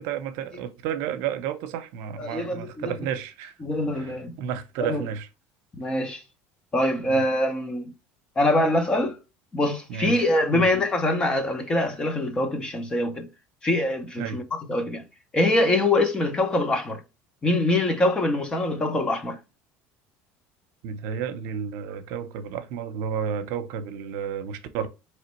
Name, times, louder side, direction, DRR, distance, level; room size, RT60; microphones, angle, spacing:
voice 1, 0.0-3.5 3.9-5.3 7.1-7.2 9.9-10.2 10.5-10.7 14.2-14.4 20.8-24.9, right 8 dB, 70° right, 0.7 m, -31 dB
voice 2, 2.2-2.9 3.6-4.3 4.8-5.0 5.8-6.2 6.7-7.8 8.4-9.2 9.5-13.3 13.6-15.0 15.3-17.0 17.4-19.4, left 1 dB, 15° left, 0.7 m, -24 dB
4.3 x 3.1 x 3.0 m
cardioid pair, 155°, 5 cm